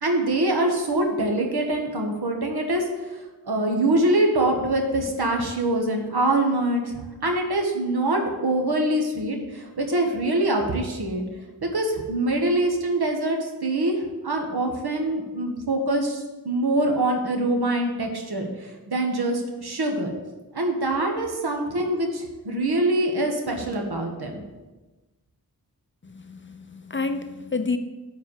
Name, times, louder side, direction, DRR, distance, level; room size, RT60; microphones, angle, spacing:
voice 1, 0.0-3.2 3.5-11.2 11.6-20.1 20.5-24.4, right 1 dB, 75° right, 2 dB, 1.5 m, -24 dB
voice 2, 26.0-27.8, left 4 dB, 30° left, 7 dB, 0.6 m, -29 dB
7.4 x 4.6 x 6.5 m, 1.1 s
wide cardioid pair, 60°, 38 cm